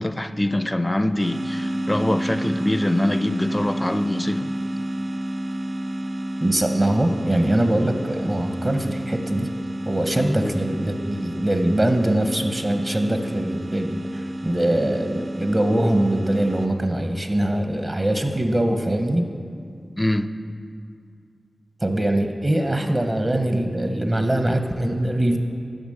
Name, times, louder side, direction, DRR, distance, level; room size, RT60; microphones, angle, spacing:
voice 1, 0.0-4.5 10.2-10.6 20.0-20.3, left 1 dB, 20° left, 11 dB, 0.4 m, -24 dB
sound 1, 1.2-16.7, right 1 dB, 70° right, 0.9 m, -30 dB
voice 2, 6.4-9.5 9.9-19.2 21.8-25.4, right 1 dB, 35° right, 5 dB, 0.8 m, -22 dB
8.9 x 6.0 x 6.5 m, 2.3 s
cardioid pair, 45°, 0 cm